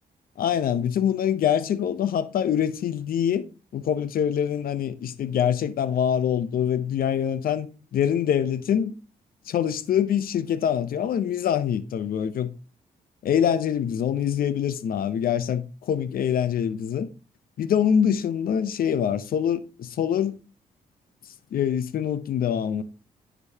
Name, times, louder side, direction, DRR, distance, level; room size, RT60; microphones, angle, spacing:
voice 1, 0.4-3.4 3.7-8.9 9.5-12.5 13.2-17.1 17.6-20.4 21.5-22.8, left 9 dB, 65° left, 0.7 m, -24 dB
9.7 x 5.2 x 2.8 m
supercardioid pair, 60°, 16 cm